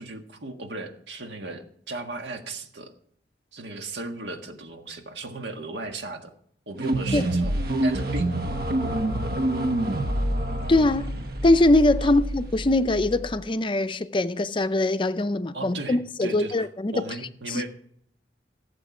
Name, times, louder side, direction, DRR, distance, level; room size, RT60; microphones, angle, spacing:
voice 1, 0.0-2.9 3.5-6.3 6.7-8.4 12.0-12.2 15.5-16.7 16.9-17.7, right 2 dB, 85° right, 1.6 m, -36 dB
sound 1, 6.8-13.4, right 1 dB, 60° right, 1.0 m, -27 dB
voice 2, 10.7-11.1 11.4-17.0 17.5-17.6, left 2 dB, 30° left, 0.5 m, -22 dB
16.5 x 7.6 x 4.9 m
head